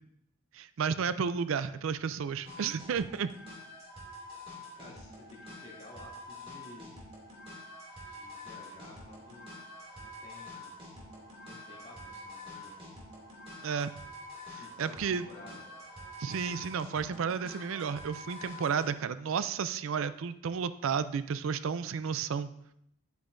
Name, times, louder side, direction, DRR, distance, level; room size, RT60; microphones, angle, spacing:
voice 1, 0.5-3.3 13.6-13.9 14.5-15.2 16.2-22.5, right 6 dB, 75° right, 13 dB, 0.4 m, -32 dB
sound 1, 2.4-18.9, left 1 dB, 30° right, 2.5 m, -47 dB
voice 2, 4.7-6.9 8.1-9.5 10.0-10.8 11.4-12.9 14.6-15.6, left 2 dB, 30° left, -5 dB, 2.5 m, -53 dB
10.5 x 8.1 x 2.6 m, 0.75 s
head